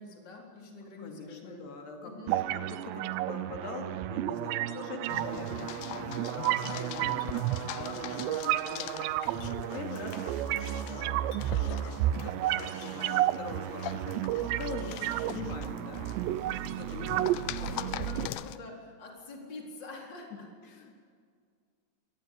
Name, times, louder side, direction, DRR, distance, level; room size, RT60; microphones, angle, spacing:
voice 1, 0.0-1.6 2.0-2.5 17.6-20.8, left 2 dB, 25° left, 0 dB, 4.3 m, -46 dB
voice 2, 0.8-11.2 11.5-17.3 17.8-18.0 20.6-20.9, left 4 dB, 70° left, 2 dB, 4.3 m, -43 dB
sound 1, 2.3-18.3, right 14 dB, 85° right, 2.9 m, -32 dB
sound 2, 5.1-18.6, left 15 dB, 90° left, 3.0 m, -43 dB
Chink clink, 7.2-7.4 9.4-9.6 11.3-11.5 12.8-13.0, left 8 dB, 50° left, 2.2 m, -53 dB
25.5 x 19.0 x 8.4 m, 2.1 s
omnidirectional pair, 5.0 m